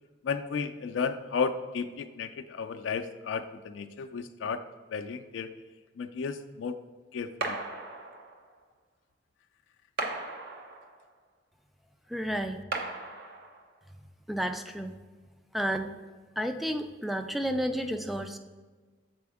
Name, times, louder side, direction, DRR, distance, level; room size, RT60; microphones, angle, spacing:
voice 1, 0.2-4.6 4.9-5.5 6.0-6.8 7.1-7.6, left 5 dB, 85° left, 7 dB, 0.4 m, -33 dB
sound 1, 7.4-8.5 10.0-11.1 12.7-13.8, right 2 dB, 60° right, 0.8 m, -36 dB
voice 2, 12.1-12.6 14.3-14.9 15.5-15.9 16.4-18.4, equal, ahead, 7 dB, 0.3 m, -31 dB
7.5 x 4.3 x 3.5 m, 1.4 s
head